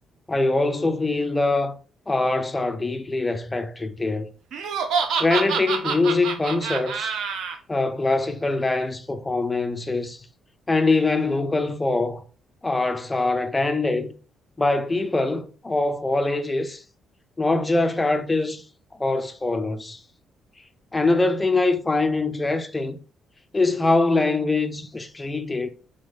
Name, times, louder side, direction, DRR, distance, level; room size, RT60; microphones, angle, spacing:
voice 1, 0.3-1.7 2.1-4.3 5.2-7.1 7.7-10.2 10.7-12.2 12.6-14.1 14.6-16.8 17.4-18.6 19.0-20.0 20.9-23.0 23.5-25.7, left 3 dB, 10° left, 0.3 m, -23 dB
Laughter, 4.5-7.6, right 6 dB, 65° right, 0.5 m, -26 dB
3.9 x 2.6 x 3.3 m
cardioid pair, 170°, 0 cm